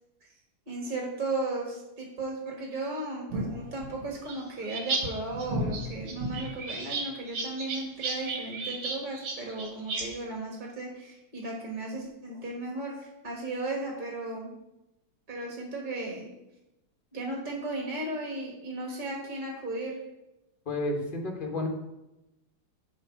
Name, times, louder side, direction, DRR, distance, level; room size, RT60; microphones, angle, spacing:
voice 1, 0.7-14.5 15.3-16.3 17.1-20.0, right 2 dB, 30° right, -1 dB, 1.3 m, -35 dB
sound 1, 3.3-5.0 5.3-10.0, right 2 dB, 50° right, 1.4 m, -33 dB
voice 2, 20.6-21.7, left 2 dB, 30° left, 1 dB, 1.1 m, -31 dB
9.2 x 3.2 x 5.8 m, 0.94 s
omnidirectional pair, 2.1 m